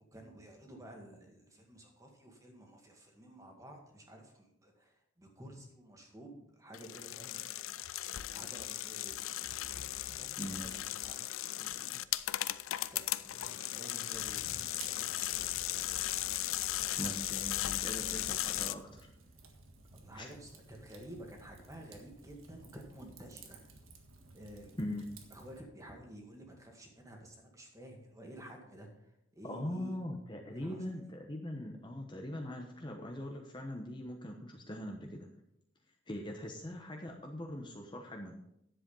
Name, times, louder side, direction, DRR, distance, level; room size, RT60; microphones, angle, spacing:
voice 1, 0.1-7.8 8.3-9.2 9.9-12.0 12.9-15.9 19.9-23.7 24.3-24.8 25.3-30.0 30.5-30.9, right 1 dB, 15° right, 1 dB, 1.9 m, -52 dB
sound 1, 6.7-18.7, left 14 dB, 80° left, 0.4 m, -37 dB
Fire, 14.4-25.6, right 4 dB, 90° right, 1.6 m, -55 dB
voice 2, 17.0-19.1 20.1-20.3 24.8-25.0 29.5-35.3 36.1-38.3, left 1 dB, 25° left, 2 dB, 1.0 m, -41 dB
10.5 x 7.8 x 5.5 m, 0.78 s
head